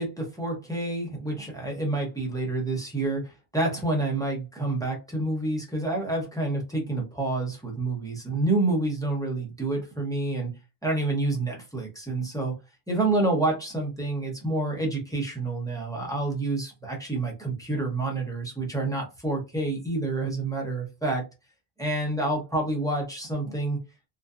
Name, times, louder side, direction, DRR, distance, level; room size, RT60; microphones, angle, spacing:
voice 1, 0.0-10.5 10.8-12.5 12.9-21.2 21.8-23.8, right 2 dB, 5° left, -1 dB, 0.6 m, -28 dB
2.6 x 2.2 x 2.3 m, 0.27 s
omnidirectional pair, 1.1 m